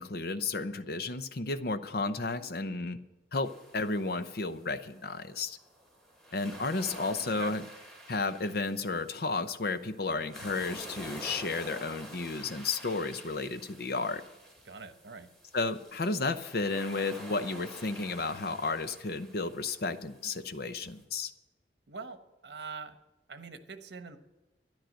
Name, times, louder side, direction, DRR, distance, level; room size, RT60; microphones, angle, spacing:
voice 1, 0.0-3.0 3.3-5.6 6.3-7.6 8.1-14.2 15.5-21.3, left 3 dB, 60° left, 11 dB, 0.7 m, -33 dB
sound 1, 3.4-21.0, equal, ahead, 2.8 m, -49 dB
voice 2, 14.6-15.3 21.9-22.2 22.4-22.9 23.3-24.2, right 4 dB, 75° right, 8 dB, 1.1 m, -43 dB
13.0 x 10.5 x 6.4 m, 1.0 s
head